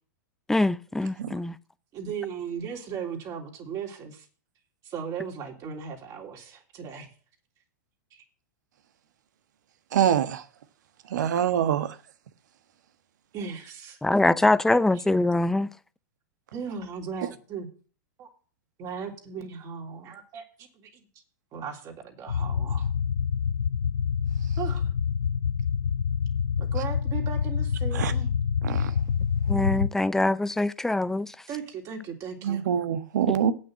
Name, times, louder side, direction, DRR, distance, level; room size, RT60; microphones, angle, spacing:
voice 1, 0.5-1.6 14.0-15.7 29.5-31.5, left 2 dB, 5° left, 0.5 m, -23 dB
voice 2, 1.9-4.3 4.8-7.1 8.1-8.2 13.3-14.0 16.5-17.7 18.2-18.3 18.8-21.0 21.5-22.9 24.6-24.8 26.6-28.3 31.5-32.6, right 7 dB, 35° right, 3.3 m, -37 dB
voice 3, 9.9-10.4 11.1-11.9 27.9-28.1 28.6-28.9 32.4-33.5, right 9 dB, 70° right, 1.3 m, -25 dB
sound 1, 22.3-29.9, left 7 dB, 90° left, 0.4 m, -27 dB
8.9 x 6.4 x 7.7 m
hypercardioid pair, 110°, 10 cm